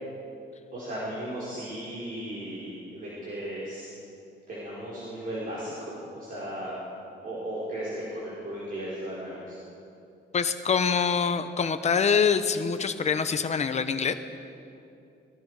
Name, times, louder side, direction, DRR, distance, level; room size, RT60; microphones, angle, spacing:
voice 1, 0.7-3.9 4.5-6.8 7.2-9.6, right 1 dB, 45° right, -7 dB, 4.9 m, -36 dB
voice 2, 10.3-14.1, left 6 dB, 35° left, 9 dB, 1.0 m, -25 dB
26.5 x 20.0 x 5.0 m, 2.7 s
wide cardioid pair, 175°, 19 cm